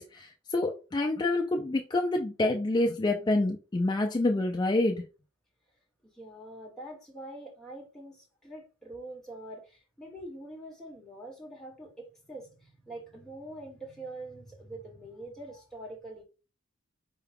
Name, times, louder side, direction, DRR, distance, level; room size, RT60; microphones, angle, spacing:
voice 1, 0.0-5.1, left 2 dB, 20° left, 0.3 m, -27 dB
voice 2, 6.1-16.2, right 1 dB, ahead, 1.1 m, -44 dB
4.6 x 2.2 x 3.4 m
head